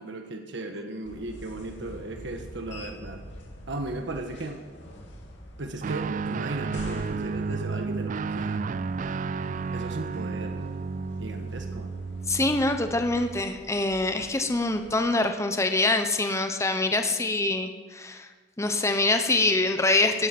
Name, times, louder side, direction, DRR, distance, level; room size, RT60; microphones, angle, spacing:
voice 1, 0.0-3.2 3.7-4.6 5.6-8.6 9.7-10.7 11.2-12.0, right 2 dB, 70° right, 4 dB, 1.4 m, -36 dB
sound 1, 1.0-15.2, equal, 65° left, 2.8 m, -46 dB
Guitar, 5.8-13.5, right 4 dB, 40° right, 0.4 m, -32 dB
voice 2, 12.3-18.3 18.6-20.3, left 2 dB, 15° left, 6 dB, 0.9 m, -25 dB
17.0 x 13.0 x 6.0 m, 1.4 s
head